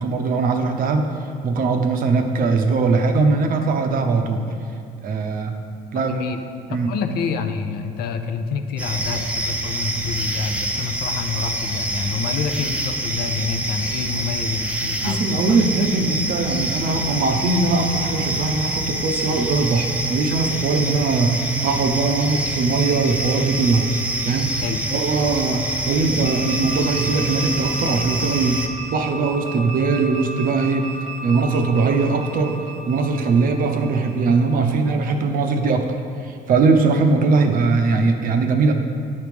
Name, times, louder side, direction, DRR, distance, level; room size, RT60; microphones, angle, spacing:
voice 1, 0.0-4.4 5.0-5.6 5.9-6.2 6.7-6.9 15.0-23.9 24.2-24.5 24.9-30.9 31.2-32.6 32.9-36.0 36.2-38.7, right 4 dB, 55° right, 5 dB, 0.7 m, -20 dB
voice 2, 5.9-6.4 6.7-15.6 24.6-24.8, left 5 dB, 65° left, 7 dB, 0.5 m, -28 dB
sound 1, 8.8-28.7, right 1 dB, 10° right, 0.6 m, -26 dB
sound 2, 22.8-25.3 26.2-34.5, right 2 dB, 80° right, 1.3 m, -36 dB
9.5 x 3.2 x 5.1 m, 2.4 s
cardioid pair, 110°, 17 cm